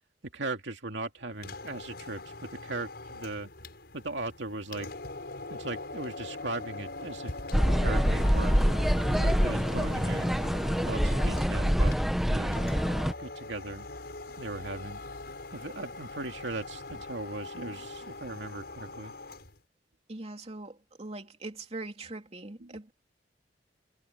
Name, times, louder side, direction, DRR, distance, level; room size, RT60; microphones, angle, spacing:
voice 1, 0.3-3.5 3.9-4.9 5.5-7.3 7.7-8.6 9.1-10.3 10.8-12.0 12.3-12.6 13.2-13.9 14.4-15.0 15.5-19.1 22.6-22.8, right 2 dB, 80° right, 2.5 m, -38 dB
sound 1, 1.3-19.6, left 2 dB, 60° left, 8.0 m, -42 dB
sound 2, 7.5-13.1, equal, ahead, 1.0 m, -25 dB
voice 2, 20.1-22.9, right 2 dB, 35° right, 3.1 m, -41 dB
head